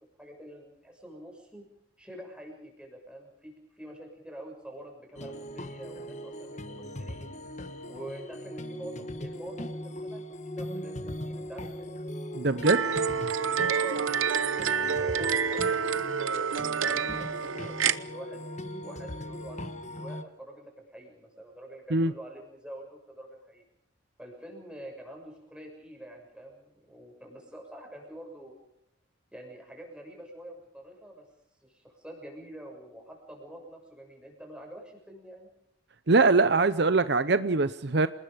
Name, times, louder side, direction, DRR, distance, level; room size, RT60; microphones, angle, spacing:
voice 1, 0.2-1.6 2.0-7.3 7.9-11.9 13.7-16.4 16.8-18.5 18.8-23.6 24.2-28.5 29.3-31.3 31.6-35.5, right 1 dB, 5° right, 1 dB, 6.7 m, -46 dB
sound 1, 5.2-20.2, left 1 dB, 35° left, 1.3 m, -39 dB
voice 2, 12.3-12.8 21.9-22.1 36.1-38.1, right 3 dB, 55° right, 13 dB, 0.7 m, -22 dB
sound 2, 12.6-18.0, right 7 dB, 85° right, 0.9 m, -28 dB
29.0 x 20.0 x 5.2 m, 0.81 s
head